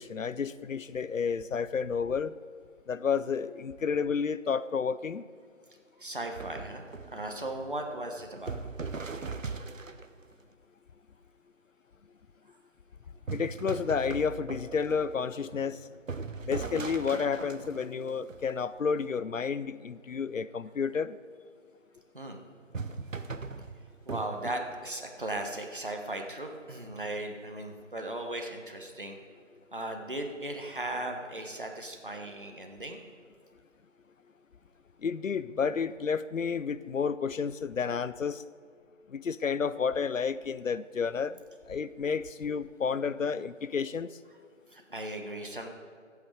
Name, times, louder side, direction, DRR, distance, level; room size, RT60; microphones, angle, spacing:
voice 1, 0.0-2.3 2.9-5.2 13.3-15.8 16.5-21.2 35.0-38.4 39.1-41.4 41.7-44.1, left 6 dB, 80° left, 15 dB, 0.6 m, -31 dB
voice 2, 6.0-6.8 7.1-8.6 22.1-22.4 24.0-29.2 29.7-33.0 44.7-45.7, right 1 dB, 40° right, 3 dB, 1.2 m, -37 dB
sound 1, 6.3-10.3 13.3-19.0 22.7-24.9, right 4 dB, 80° right, 0.9 m, -39 dB
15.0 x 8.3 x 4.9 m, 2.1 s
figure-of-eight pair, 180°, 38 cm